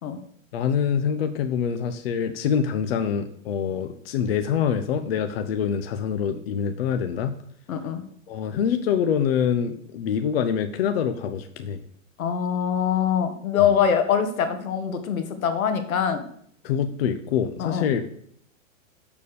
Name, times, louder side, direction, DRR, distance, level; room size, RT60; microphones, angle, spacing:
voice 1, 0.5-7.3 8.3-11.8 16.6-18.1, left 7 dB, 45° left, 8 dB, 0.7 m, -25 dB
voice 2, 7.7-8.0 12.2-16.2 17.6-17.9, left 8 dB, 85° left, 9 dB, 1.9 m, -23 dB
7.1 x 7.0 x 6.8 m, 0.65 s
supercardioid pair, 170°, 41 cm